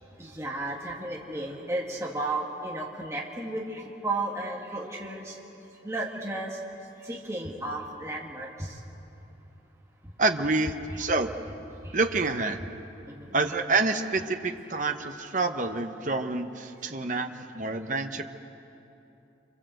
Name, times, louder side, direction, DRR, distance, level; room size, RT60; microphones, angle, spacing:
voice 1, 0.2-5.3 5.8-6.6 7.0-8.7 10.9-11.0 13.1-13.3, right 2 dB, 15° right, -3 dB, 2.2 m, -33 dB
voice 2, 10.2-11.3 11.9-12.6 13.3-18.2, right 3 dB, 40° right, 6 dB, 1.1 m, -27 dB
26.0 x 24.5 x 7.9 m, 2.9 s
head